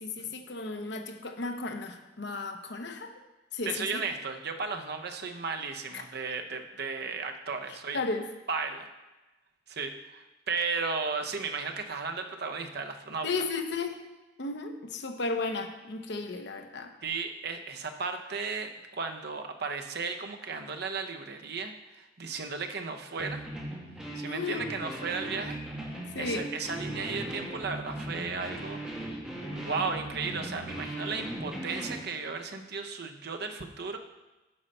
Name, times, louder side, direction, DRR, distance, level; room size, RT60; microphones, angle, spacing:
voice 1, 0.0-3.1 3.5-4.0 7.9-8.2 13.2-14.0 14.4-16.9 24.2-24.7 26.1-26.5, left 3 dB, 65° left, 5 dB, 0.9 m, -34 dB
voice 2, 3.6-8.0 8.5-8.9 9.7-13.3 17.0-23.4 24.1-25.6 26.1-28.8 29.6-34.0, right 4 dB, 60° right, 5 dB, 0.8 m, -35 dB
sound 1, 23.2-32.0, right 1 dB, 5° right, 1.9 m, -38 dB
8.7 x 5.6 x 5.4 m, 1.1 s
head